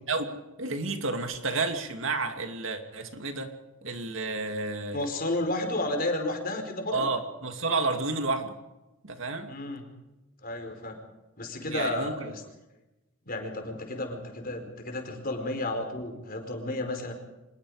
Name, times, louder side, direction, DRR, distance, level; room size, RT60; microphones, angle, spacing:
voice 1, 0.6-3.5 3.8-5.1 6.9-8.5 9.0-9.5 11.7-12.3, right 3 dB, 65° right, 6 dB, 2.5 m, -31 dB
voice 2, 4.9-7.1 9.5-9.8 10.4-11.0 11.4-12.4 13.3-17.1, left 2 dB, 45° left, 5 dB, 4.7 m, -32 dB
25.5 x 21.0 x 5.0 m, 1.0 s
head